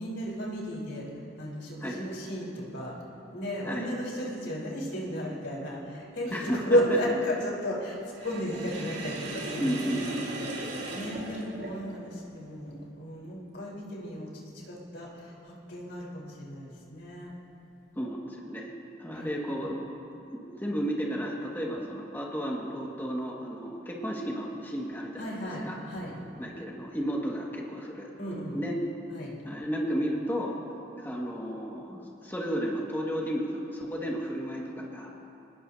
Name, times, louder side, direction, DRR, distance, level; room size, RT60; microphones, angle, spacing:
voice 1, 0.0-2.9 3.3-17.3 19.1-19.3 25.2-26.1 28.2-28.6 29.1-29.3, equal, 75° left, -4 dB, 4.2 m, -33 dB
voice 2, 6.3-6.6 9.6-10.5 18.0-18.7 19.0-19.8 20.3-25.4 25.6-25.8 26.4-28.1 28.5-28.8 29.5-30.6 31.0-35.1, equal, 10° left, -3 dB, 1.9 m, -33 dB
Sink (filling or washing), 8.2-12.1, right 2 dB, 75° right, 4.7 m, -37 dB
25.0 x 20.0 x 2.8 m, 2.7 s
head